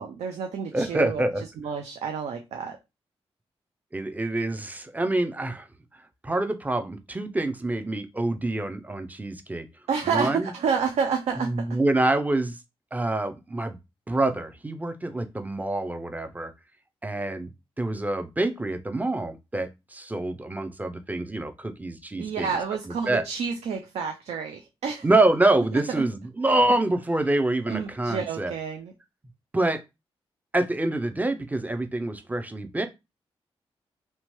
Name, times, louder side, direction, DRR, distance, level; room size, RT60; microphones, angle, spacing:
voice 1, 0.0-1.2 1.6-2.8 9.9-11.8 22.2-25.1 25.7-26.1 26.5-26.6 27.7-28.9, right 6 dB, 80° right, 0.4 m, -29 dB
voice 2, 0.7-1.4 3.9-5.7 6.2-9.7 10.1-10.5 11.4-12.6 12.9-13.8 14.1-16.5 17.0-17.5 17.8-22.5 23.1-23.2 25.0-28.5 29.5-29.8 30.5-32.9, right 2 dB, 15° right, 0.5 m, -26 dB
2.8 x 2.2 x 3.0 m
cardioid pair, 50°, 11 cm